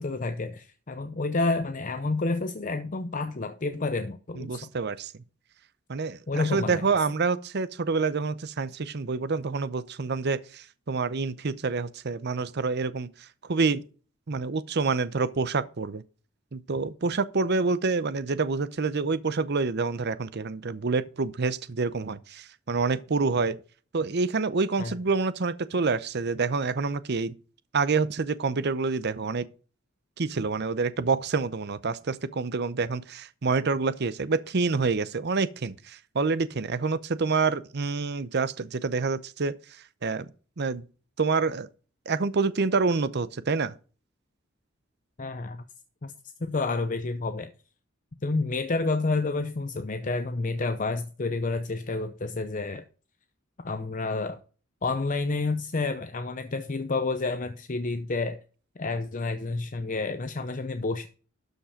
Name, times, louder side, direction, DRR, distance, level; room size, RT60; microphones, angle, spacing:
voice 1, 0.0-4.7 6.3-6.8 24.8-24.9 45.2-45.6 46.0-46.1 46.4-47.5 48.2-52.8 53.6-54.4 54.8-58.4 58.8-61.1, left 3 dB, 40° left, 0.7 m, -29 dB
voice 2, 4.4-5.1 5.9-13.8 14.3-16.0 16.5-23.6 23.9-27.3 27.7-29.5 30.2-40.3 40.6-40.8 41.2-41.7 42.1-43.8, right 4 dB, 55° right, 0.7 m, -27 dB
12.5 x 5.4 x 5.0 m
head